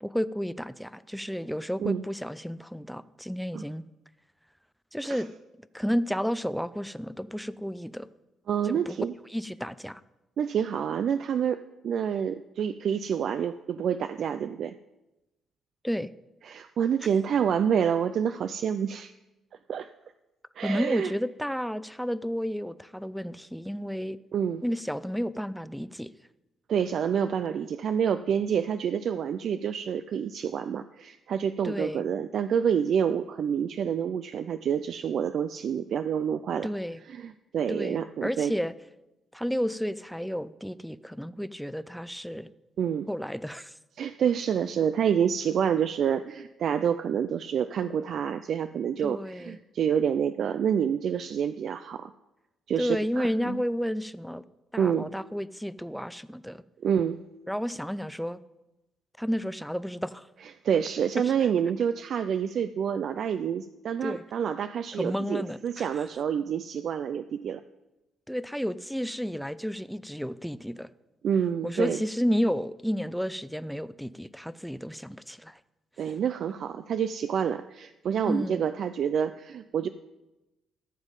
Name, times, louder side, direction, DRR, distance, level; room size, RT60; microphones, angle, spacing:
voice 1, 0.0-3.8 4.9-5.3 5.7-8.1 8.6-9.0 9.3-10.0 15.8-16.1 20.6-24.2 24.6-26.1 31.6-32.0 36.6-37.0 37.7-38.7 39.3-42.5 43.1-43.7 49.0-49.6 52.8-54.4 54.7-56.6 57.5-58.4 59.2-60.3 64.0-64.2 64.9-65.9 68.3-70.9 71.6-75.6 78.3-78.6, equal, ahead, 15 dB, 0.4 m, -31 dB
voice 2, 8.5-9.1 10.4-14.7 16.4-19.1 19.7-19.9 20.6-21.1 24.3-24.6 26.7-36.7 37.1-38.5 42.8-43.1 44.0-52.1 52.7-53.6 54.8-55.1 56.8-57.2 60.6-67.6 71.2-72.0 76.0-79.9, right 8 dB, 65° right, 11 dB, 0.4 m, -28 dB
13.0 x 7.2 x 5.3 m, 0.99 s
cardioid pair, 90°, 0 cm